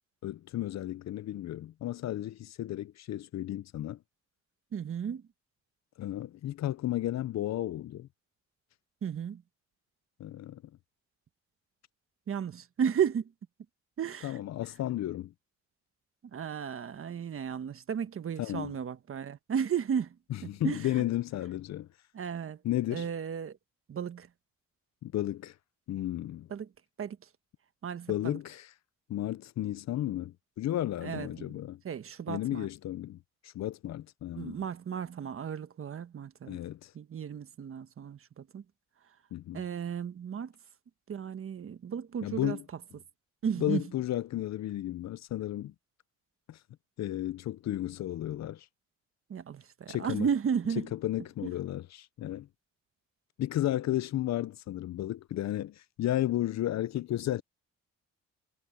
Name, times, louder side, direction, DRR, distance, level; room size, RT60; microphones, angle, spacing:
voice 1, 0.2-4.0 6.0-8.1 10.2-10.6 14.2-15.3 18.4-18.7 20.3-21.9 22.6-23.1 25.0-25.5 25.9-26.5 28.1-28.7 29.1-31.8 32.3-34.6 36.5-36.9 39.3-39.6 42.2-42.6 43.6-45.7 46.5-46.6 47.0-48.7 49.9-50.3 50.9-52.5 53.4-57.4, left 13 dB, 60° left, 0.7 m, -33 dB
voice 2, 4.7-5.2 9.0-9.4 12.3-13.3 14.0-14.4 16.3-20.2 20.4-21.0 22.1-22.6 22.9-23.6 23.9-24.3 26.5-26.7 27.0-27.2 27.8-28.4 31.0-31.6 31.8-32.7 34.4-36.6 36.9-38.6 39.5-40.5 41.1-42.6 43.4-43.8 49.3-50.9 51.4-51.5, right 7 dB, 45° right, 1.3 m, -34 dB
cardioid pair, 90°, 30 cm